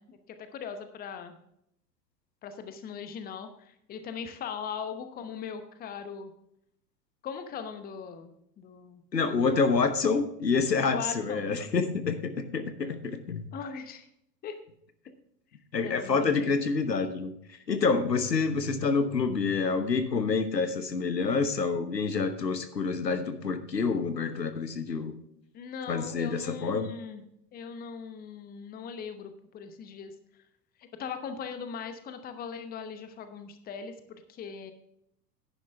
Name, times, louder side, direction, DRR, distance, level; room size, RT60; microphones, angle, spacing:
voice 1, 0.0-1.4 2.4-6.3 7.2-9.0 10.9-11.4 13.5-14.1 14.4-14.6 15.8-16.5 25.5-27.2 27.5-30.1 30.8-34.7, left 6 dB, 20° left, 9 dB, 0.9 m, -40 dB
voice 2, 9.1-13.5 15.7-17.3 17.7-25.1 25.9-26.9, left 4 dB, 80° left, 10 dB, 1.1 m, -27 dB
10.5 x 10.0 x 3.4 m, 0.76 s
figure-of-eight pair, 90°, 49 cm